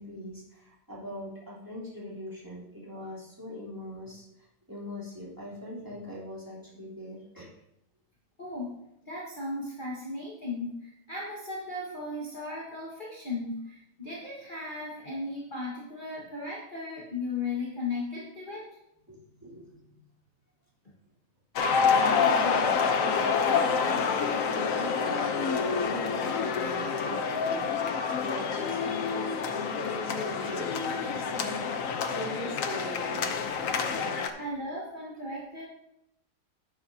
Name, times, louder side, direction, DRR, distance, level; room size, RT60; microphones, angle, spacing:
voice 1, 0.0-4.2 4.7-7.5 19.1-19.6 19.9-20.0 21.9-27.7 28.2-33.4, left 1 dB, 10° right, -7 dB, 3.4 m, -40 dB
voice 2, 8.4-8.7 9.0-18.7 34.3-35.6, left 2 dB, 30° left, -6 dB, 1.7 m, -36 dB
sound 1, 21.6-34.3, left 5 dB, 60° left, 1.0 m, -28 dB
10.5 x 9.2 x 2.8 m, 0.84 s
omnidirectional pair, 1.9 m